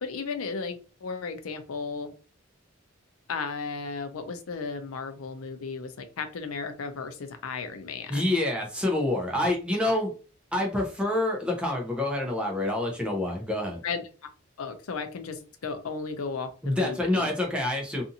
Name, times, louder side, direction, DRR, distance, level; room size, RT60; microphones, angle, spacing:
voice 1, 0.0-2.1 3.3-8.4 13.8-14.1 14.6-17.3, left 4 dB, 90° left, 7 dB, 0.5 m, -35 dB
voice 2, 8.1-10.1 10.5-13.8 16.6-18.0, left 1 dB, 5° right, 0 dB, 0.6 m, -27 dB
2.5 x 2.5 x 2.7 m, 0.35 s
head